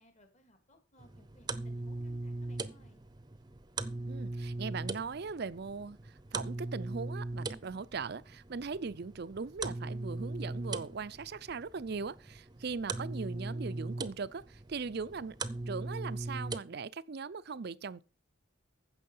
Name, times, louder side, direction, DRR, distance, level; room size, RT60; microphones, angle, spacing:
voice 1, 0.0-3.1, equal, 35° left, 2.4 m, -63 dB
sound 1, 1.0-16.6, right 2 dB, 20° right, 0.7 m, -40 dB
voice 2, 4.1-15.4 15.7-18.0, right 5 dB, 55° right, 0.5 m, -40 dB
15.0 x 6.3 x 5.5 m
head